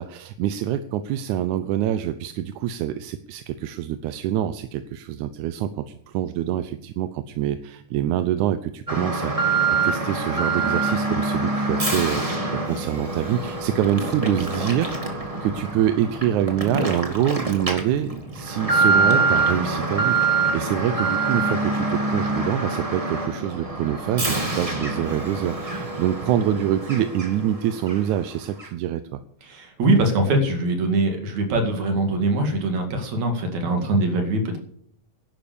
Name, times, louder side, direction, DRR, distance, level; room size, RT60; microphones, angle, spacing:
voice 1, 0.0-15.0 15.4-29.2, right 11 dB, 90° right, 10 dB, 2.1 m, -25 dB
Alarm, 8.9-27.5 27.9-28.0 28.6-28.7, right 3 dB, 15° right, 1.7 m, -25 dB
voice 2, 29.5-34.6, right 2 dB, 75° right, 4 dB, 3.5 m, -22 dB
11.5 x 10.5 x 7.0 m, 0.66 s
omnidirectional pair, 3.3 m